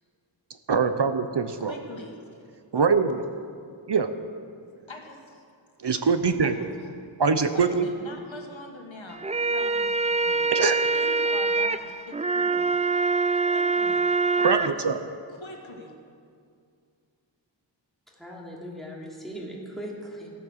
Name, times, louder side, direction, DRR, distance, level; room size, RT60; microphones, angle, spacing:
voice 1, 0.7-1.7 2.7-3.3 3.9-4.1 5.8-6.5 7.2-7.9 10.5-10.8 14.4-15.0, right 5 dB, 60° right, 9 dB, 0.7 m, -23 dB
voice 2, 1.6-2.5 4.9-5.4 6.4-6.5 7.5-10.5 10.9-12.7 13.3-14.0 14.4-14.7 15.4-16.0, left 2 dB, 75° left, 1 dB, 1.8 m, -43 dB
sound 1, 9.1-14.7, right 4 dB, 15° right, 0.3 m, -24 dB
voice 3, 18.1-20.3, equal, ahead, -4 dB, 2.9 m, -39 dB
15.5 x 8.6 x 6.5 m, 2.2 s
wide cardioid pair, 50°, 47 cm